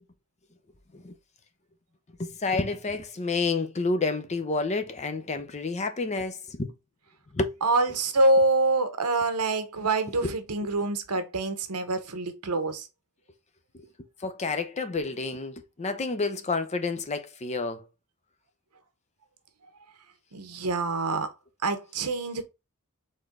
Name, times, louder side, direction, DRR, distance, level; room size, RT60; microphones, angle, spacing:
voice 1, 2.2-6.7 7.3-7.6 10.2-10.4 10.6-10.7 13.7-17.9, left 3 dB, 30° left, 0.7 m, -30 dB
voice 2, 7.6-12.9 20.3-21.3 21.6-22.4, right 2 dB, 85° right, 1.0 m, -26 dB
4.3 x 3.3 x 3.6 m
head